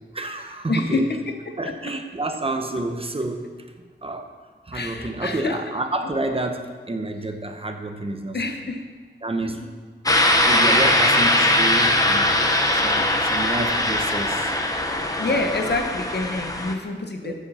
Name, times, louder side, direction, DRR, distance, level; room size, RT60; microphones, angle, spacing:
voice 1, 0.1-1.0 1.6-3.5 4.0-4.3 4.7-8.4 9.2-9.6 10.5-12.3 12.7-14.5 15.2-15.4 17.2-17.3, right 2 dB, 30° right, 5 dB, 0.9 m, -29 dB
voice 2, 0.7-1.2 4.7-5.6 8.3-8.8 10.0-10.5 15.1-17.3, left 2 dB, 60° left, 4 dB, 1.1 m, -27 dB
sound 1, 10.1-16.7, left 1 dB, 20° left, 1.0 m, -20 dB
13.5 x 7.4 x 4.3 m, 1.5 s
wide cardioid pair, 105°, 20 cm